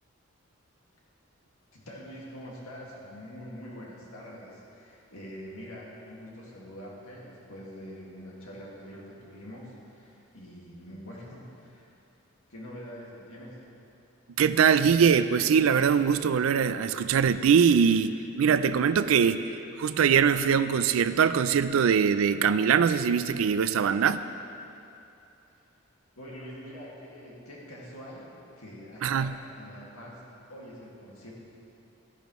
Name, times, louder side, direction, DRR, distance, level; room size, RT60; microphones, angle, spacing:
voice 1, 1.7-11.9 12.5-13.6 26.2-28.3 28.6-30.2 30.5-31.3, equal, 85° left, -4 dB, 2.0 m, -44 dB
voice 2, 14.4-24.3 29.0-29.3, right 7 dB, 75° right, 12 dB, 0.4 m, -22 dB
12.5 x 10.5 x 3.1 m, 2.7 s
head